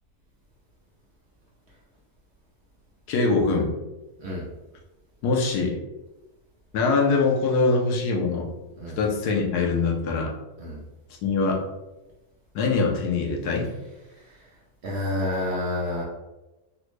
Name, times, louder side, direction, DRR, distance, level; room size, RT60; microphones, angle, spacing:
voice 1, 3.1-3.7 5.2-5.8 6.7-8.5 9.0-10.3 11.2-11.6 12.5-13.7, left 4 dB, 90° left, 0 dB, 1.2 m, -23 dB
voice 2, 14.8-16.0, left 1 dB, 60° right, -3 dB, 0.7 m, -29 dB
3.8 x 2.1 x 3.0 m, 1.0 s
omnidirectional pair, 1.6 m